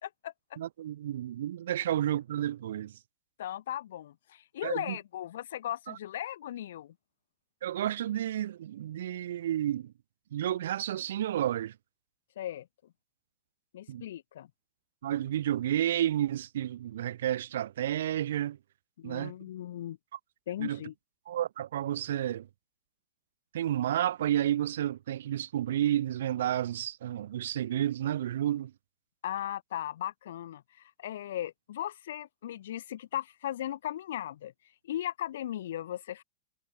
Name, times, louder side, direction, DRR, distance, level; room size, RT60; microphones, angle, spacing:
voice 1, 0.0-0.3 3.4-6.9 12.4-12.7 13.7-14.5 19.0-20.0 20.5-20.9 29.2-34.5 34.8-36.2, left 12 dB, 60° left, 2.4 m, -37 dB
voice 2, 0.6-3.0 4.6-5.0 5.9-6.0 7.6-9.9 10.3-11.7 13.9-14.0 15.0-18.6 19.0-19.3 20.6-20.8 21.3-22.5 23.5-28.7, right 11 dB, 60° right, 0.9 m, -31 dB
figure-of-eight pair, 90°, 0 cm